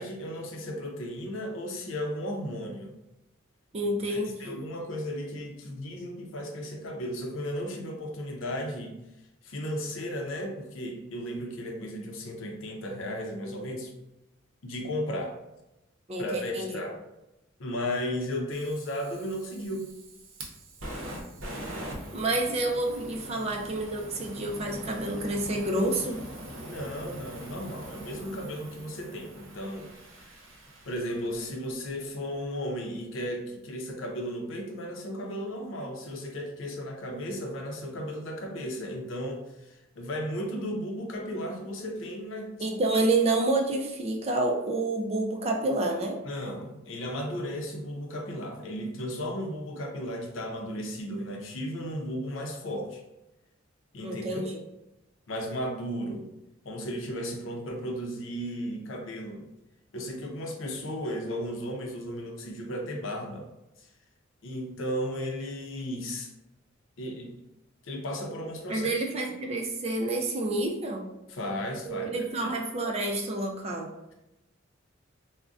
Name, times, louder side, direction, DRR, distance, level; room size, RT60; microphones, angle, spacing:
voice 1, 0.0-2.9 4.1-9.0 9.4-13.9 14.6-15.4 16.2-17.0 17.6-19.9 26.6-29.9 30.8-42.6 46.2-53.0 53.9-54.4 55.3-56.3 56.6-59.5 59.9-63.5 64.4-66.3 67.0-67.3 67.8-69.0 71.3-72.1 72.4-72.5, equal, 80° left, 2 dB, 0.6 m, -35 dB
voice 2, 3.7-4.6 16.1-16.8 22.1-26.2 42.6-46.2 54.0-54.6 68.7-71.1 71.9-73.9, right 2 dB, 30° right, 1 dB, 0.4 m, -29 dB
Fire, 18.5-31.6, right 1 dB, 85° right, 0.7 m, -43 dB
3.7 x 2.1 x 2.4 m, 0.92 s
head